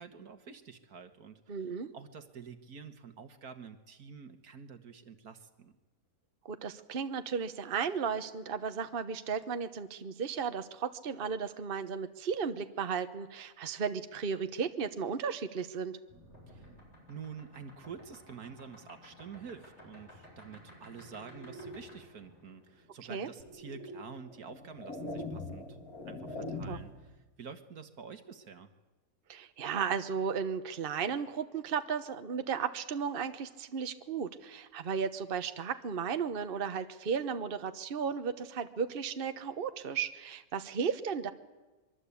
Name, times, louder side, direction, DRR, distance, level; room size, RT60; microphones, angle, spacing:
voice 1, 0.0-5.8 16.5-16.7 17.1-25.8 26.1-28.7, right 6 dB, 75° right, 8 dB, 2.0 m, -48 dB
voice 2, 1.5-1.9 6.5-16.0 23.1-23.3 26.7-26.8 29.3-41.3, right 6 dB, 40° right, 9 dB, 1.2 m, -35 dB
sound 1, 16.1-24.0 25.3-26.5, right 1 dB, 45° left, 8.5 m, -52 dB
sound 2, 23.4-23.5 24.3-27.1, left 2 dB, 70° left, 2.6 m, -41 dB
24.5 x 23.0 x 8.5 m, 1.2 s
omnidirectional pair, 1.6 m